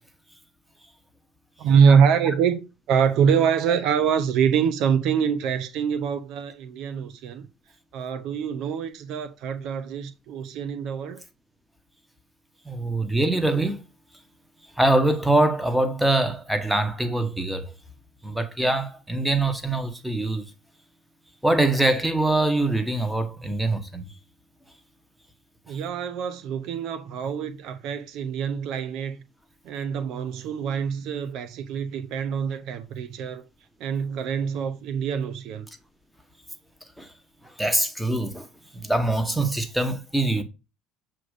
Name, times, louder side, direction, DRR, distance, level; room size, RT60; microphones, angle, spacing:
voice 1, 1.6-2.6 2.9-7.5 7.9-11.2 25.7-29.2 29.6-33.4 33.8-35.7, right 7 dB, 70° right, 0.7 m, -24 dB
voice 2, 12.6-13.8 14.8-17.7 18.2-20.5 21.4-24.1 37.0-37.1 37.4-38.5 38.7-40.4, right 2 dB, 5° right, 1.1 m, -23 dB
7.6 x 2.6 x 4.9 m
supercardioid pair, 90°, 0 cm